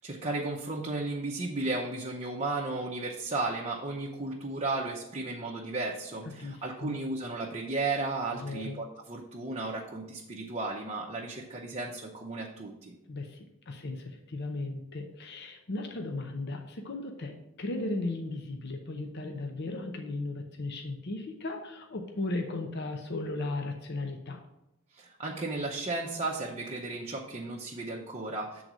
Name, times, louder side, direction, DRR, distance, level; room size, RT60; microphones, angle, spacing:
voice 1, 0.0-12.9 24.9-28.6, right 3 dB, 30° right, -2 dB, 0.8 m, -34 dB
voice 2, 6.4-6.9 8.3-8.8 13.1-24.4, left 2 dB, 50° left, 3 dB, 0.7 m, -36 dB
7.7 x 3.9 x 6.0 m, 0.91 s
head